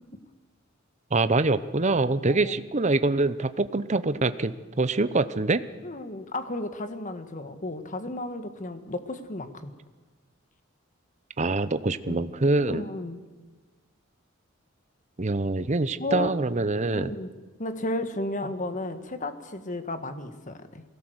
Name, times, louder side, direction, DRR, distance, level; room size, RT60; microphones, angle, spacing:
voice 1, 1.1-5.6 11.4-12.8 15.2-17.1, right 3 dB, 35° right, 13 dB, 0.8 m, -25 dB
voice 2, 2.3-2.6 5.8-9.7 12.1-12.3 12.7-13.2 16.0-16.3 16.9-17.3 17.6-20.8, left 1 dB, 40° left, 9 dB, 1.6 m, -33 dB
23.0 x 17.5 x 8.1 m, 1.3 s
head